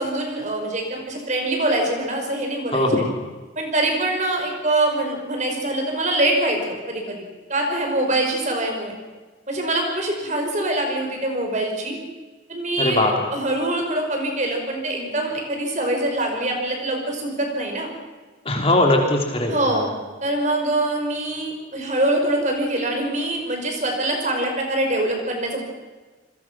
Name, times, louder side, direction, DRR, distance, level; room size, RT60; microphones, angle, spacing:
voice 1, 0.0-2.9 3.6-7.2 7.5-8.9 9.5-12.0 12.5-17.9 19.5-19.9 20.2-25.6, right 1 dB, 40° right, 3 dB, 5.1 m, -24 dB
voice 2, 2.7-3.1 12.8-13.3 18.4-19.8, left 1 dB, 30° left, 2 dB, 3.1 m, -20 dB
28.5 x 21.5 x 6.1 m, 1.3 s
head